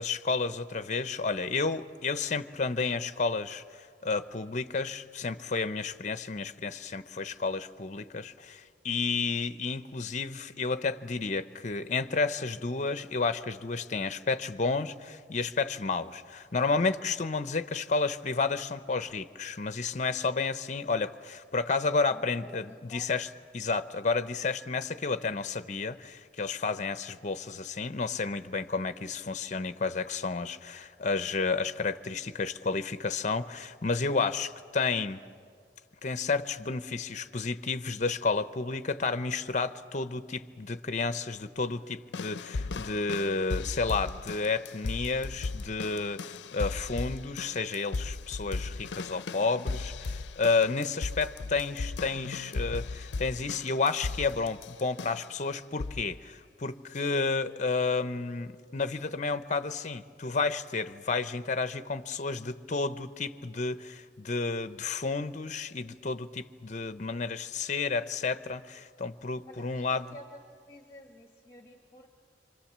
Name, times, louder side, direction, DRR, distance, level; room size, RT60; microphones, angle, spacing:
voice 1, 0.0-35.2 36.0-70.2, left 4 dB, 45° left, 12 dB, 0.7 m, -31 dB
voice 2, 22.1-23.0 69.4-69.8 70.1-70.2 70.7-72.1, left 1 dB, 20° left, 3 dB, 1.4 m, -50 dB
sound 1, 42.1-55.4 55.8-56.2 56.9-57.0, left 3 dB, 90° left, 0.6 m, -37 dB
26.5 x 25.5 x 7.4 m, 2.1 s
head